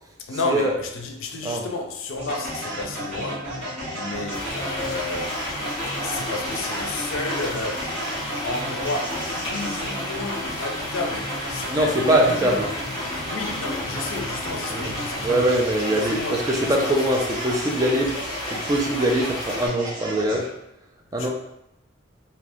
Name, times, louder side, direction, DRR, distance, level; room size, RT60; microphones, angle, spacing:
voice 1, 0.2-3.5 3.9-5.5 6.0-7.9 8.4-12.5 13.3-15.6 15.8-16.4 16.7-16.8 20.2-20.5 21.2-21.3, left 3 dB, 85° left, 0.5 m, -32 dB
sound 1, 2.2-20.5, equal, 35° right, 1.4 m, -34 dB
sound 2, 4.3-19.7, left 1 dB, 20° left, 0.9 m, -32 dB
voice 2, 11.7-12.7 14.7-14.9 15.2-18.2 18.5-20.5 21.1-21.3, right 1 dB, 20° right, 0.4 m, -22 dB
2.8 x 2.5 x 3.4 m
head